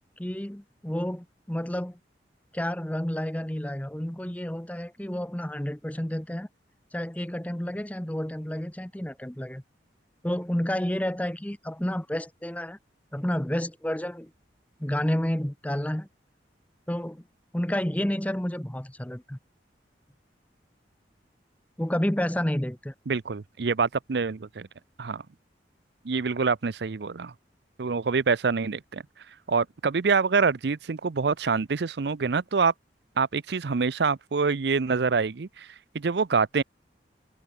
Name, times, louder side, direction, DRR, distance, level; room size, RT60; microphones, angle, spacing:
voice 1, 0.2-2.0 2.5-6.5 6.9-9.6 10.2-12.8 13.1-14.3 14.8-16.1 16.9-17.2 17.5-19.4 21.8-22.9, equal, 10° left, 0.8 m, -30 dB
voice 2, 23.1-24.7 25.0-25.2 26.0-27.3 27.8-29.0 29.5-32.7 33.2-35.7 35.9-36.6, right 5 dB, 65° right, 0.6 m, -26 dB
head